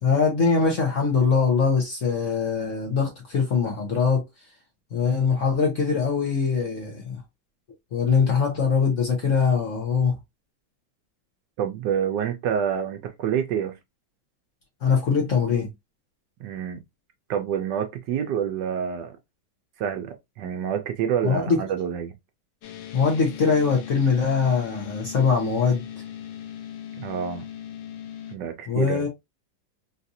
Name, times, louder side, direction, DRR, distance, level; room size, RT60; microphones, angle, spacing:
voice 1, 0.0-4.2 4.9-7.2 7.9-10.2 14.8-15.7 21.2-21.6 22.9-25.8 28.7-29.1, left 5 dB, 50° left, 1.0 m, -22 dB
voice 2, 11.6-13.8 16.4-16.8 17.3-19.1 19.8-22.1 27.0-27.4 28.3-29.1, right 8 dB, 70° right, 1.1 m, -27 dB
sound 1, 22.6-28.4, left 10 dB, 80° left, 1.3 m, -39 dB
3.9 x 2.5 x 2.7 m
omnidirectional pair, 2.1 m